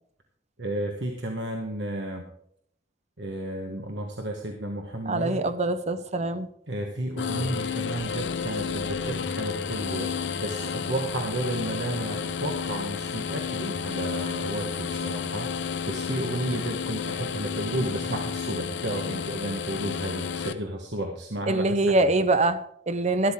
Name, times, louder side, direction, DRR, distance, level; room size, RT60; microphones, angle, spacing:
voice 1, 0.6-2.2 3.2-5.4 6.7-10.1 10.4-22.1, right 1 dB, 70° right, 2 dB, 1.5 m, -32 dB
voice 2, 5.1-6.5 21.5-23.3, right 2 dB, 40° right, 12 dB, 0.8 m, -24 dB
sound 1, 7.2-20.5, left 6 dB, 70° left, 0.8 m, -31 dB
13.0 x 12.5 x 3.7 m, 0.70 s
head